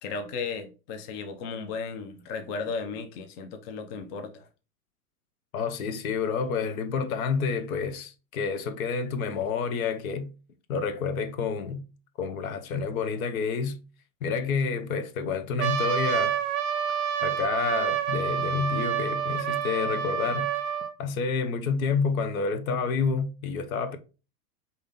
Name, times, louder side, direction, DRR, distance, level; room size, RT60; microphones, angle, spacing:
voice 1, 0.0-4.5, left 5 dB, 35° left, 0.6 m, -35 dB
voice 2, 5.5-10.3 10.7-11.8 12.2-13.8 14.2-16.4 17.2-20.5 21.0-24.0, left 5 dB, 65° left, 0.9 m, -29 dB
Trumpet, 15.6-20.9, right 8 dB, 30° right, 0.6 m, -28 dB
5.1 x 2.8 x 3.6 m
hypercardioid pair, 130°, 45 cm